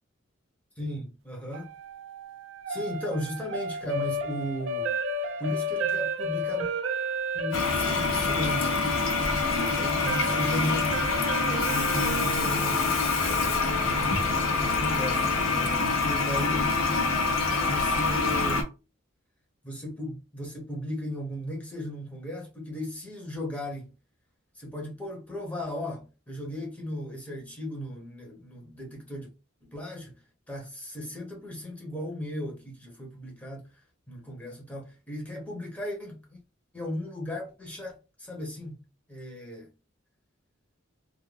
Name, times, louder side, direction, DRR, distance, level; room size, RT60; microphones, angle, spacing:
voice 1, 0.8-1.7 2.7-5.0 5.4-6.7 7.3-8.8 9.5-11.0 11.7-12.8 13.8-16.8 17.6-18.7 19.6-23.9 24.6-29.3 29.7-30.1 30.5-33.7 34.1-36.4 36.7-38.8 39.1-39.7, equal, 5° left, 0.6 m, -36 dB
sound 1, 1.5-15.6, equal, 70° right, 0.4 m, -33 dB
Toilet flush, 7.5-18.6, left 4 dB, 85° left, 0.6 m, -26 dB
2.3 x 2.2 x 3.2 m
head